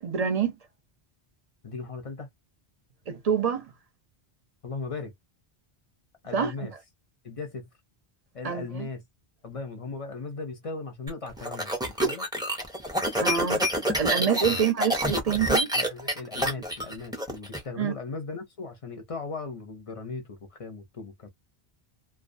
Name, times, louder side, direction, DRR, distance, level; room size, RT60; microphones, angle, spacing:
voice 1, 0.0-0.6 3.1-3.7 6.3-6.7 8.4-8.9 13.2-15.7 17.8-17.9, right 7 dB, 45° right, 0.6 m, -27 dB
voice 2, 1.6-2.3 4.6-5.1 6.2-6.7 7.2-7.7 8.3-9.0 9.4-12.3 14.5-14.6 15.7-21.3, left 4 dB, 40° left, 0.5 m, -37 dB
sound 1, 11.1-17.6, equal, 5° right, 0.5 m, -27 dB
2.3 x 2.2 x 2.5 m
omnidirectional pair, 1.1 m